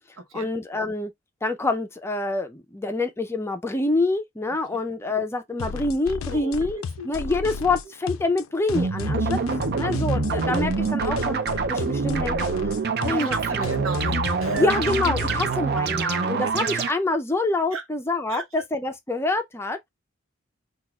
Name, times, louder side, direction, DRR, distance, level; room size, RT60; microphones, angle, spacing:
voice 1, 0.3-1.1 1.4-9.4 9.7-11.4 11.7-12.4 13.0-13.7 14.6-19.8, left 2 dB, 10° left, 0.5 m, -26 dB
sound 1, 5.6-15.5, left 6 dB, 85° left, 0.4 m, -32 dB
voice 2, 6.3-7.4 9.2-9.4 13.1-14.7 15.3-15.4 16.0-16.3 17.7-17.8 18.3-18.6, right 4 dB, 85° right, 0.9 m, -36 dB
sound 2, 8.7-16.9, right 5 dB, 50° right, 0.4 m, -26 dB
5.9 x 2.4 x 2.3 m
head